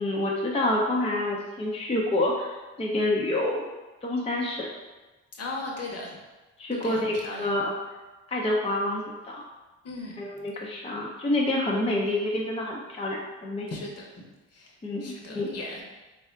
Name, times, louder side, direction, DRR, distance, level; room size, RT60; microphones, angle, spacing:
voice 1, 0.0-3.7 4.0-4.7 6.6-7.7 8.3-9.4 10.2-13.7 14.8-15.5, left 1 dB, 20° left, -3 dB, 0.6 m, -28 dB
voice 2, 5.3-6.1 6.7-7.5 9.8-10.2 13.7-14.3 14.5-14.7 15.0-15.8, left 2 dB, 55° left, -1 dB, 1.0 m, -37 dB
3.4 x 2.4 x 4.4 m, 1.2 s
cardioid pair, 90°, 30 cm